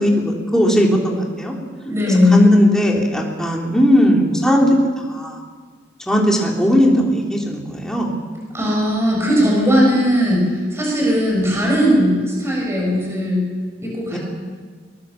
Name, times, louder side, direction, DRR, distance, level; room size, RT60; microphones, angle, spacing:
voice 1, 0.0-1.5 2.1-5.4 6.1-8.2 14.1-14.2, equal, 5° left, -1 dB, 3.4 m, -17 dB
voice 2, 1.8-2.5 8.5-13.4 13.8-14.2, left 1 dB, 15° right, -2 dB, 6.8 m, -17 dB
22.5 x 21.0 x 7.1 m, 1.5 s
head